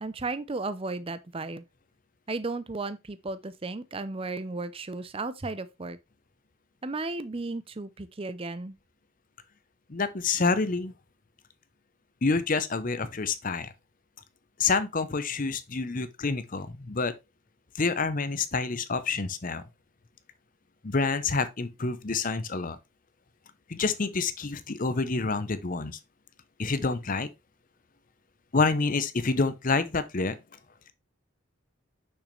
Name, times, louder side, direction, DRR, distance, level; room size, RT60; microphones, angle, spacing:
voice 1, 0.0-1.6 2.3-6.0 6.8-8.8, right 3 dB, 25° right, 0.6 m, -34 dB
voice 2, 9.9-10.9 12.2-13.7 14.6-17.1 17.7-19.6 20.8-22.8 23.7-26.0 26.6-27.3 28.5-30.4, left 4 dB, 40° left, 0.7 m, -28 dB
6.4 x 6.0 x 3.2 m
head